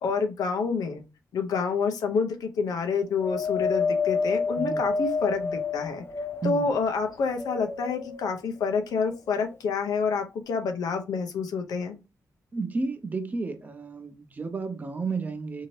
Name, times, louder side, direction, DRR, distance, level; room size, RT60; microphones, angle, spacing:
voice 1, 0.0-1.0 1.3-6.0 6.4-11.9, left 5 dB, 85° left, 0.6 m, -28 dB
Wind, 3.2-6.7 7.3-8.3 9.1-9.2, left 4 dB, 40° left, 0.5 m, -29 dB
voice 2, 12.5-15.7, right 4 dB, 25° right, 0.6 m, -32 dB
2.7 x 2.7 x 3.1 m
cardioid pair, 110°, 6 cm